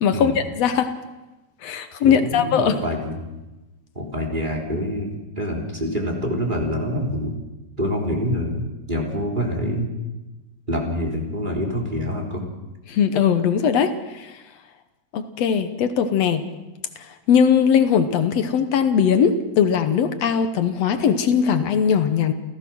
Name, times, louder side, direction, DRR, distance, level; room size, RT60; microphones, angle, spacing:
voice 1, 0.0-0.9 1.6-2.8 12.9-14.4 15.1-16.4 17.0-22.3, left 7 dB, 65° left, 9 dB, 2.0 m, -20 dB
voice 2, 2.0-3.2 4.0-7.3 7.8-9.9 10.7-12.5, equal, 15° right, 0 dB, 3.7 m, -26 dB
28.5 x 16.0 x 6.2 m, 1.1 s
omnidirectional pair, 3.3 m